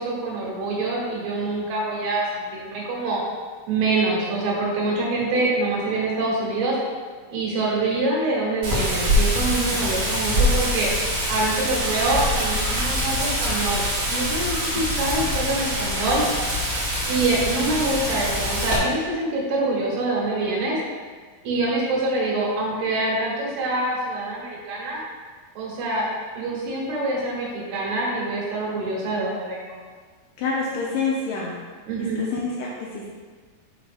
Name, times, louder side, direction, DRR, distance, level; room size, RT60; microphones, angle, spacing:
voice 1, 0.0-3.2 3.7-6.8 7.3-10.9 11.3-13.8 14.1-16.2 17.1-20.8 21.4-25.0 25.6-26.1 26.4-29.8 31.9-32.2, right 2 dB, 75° right, -4 dB, 3.3 m, -25 dB
Wind, 8.6-18.8, equal, 50° right, 1.5 m, -24 dB
voice 2, 9.6-10.0 14.7-15.0 30.4-31.5 32.0-33.1, left 4 dB, 85° left, -2 dB, 1.9 m, -28 dB
6.3 x 6.1 x 3.4 m, 1.5 s
omnidirectional pair, 4.5 m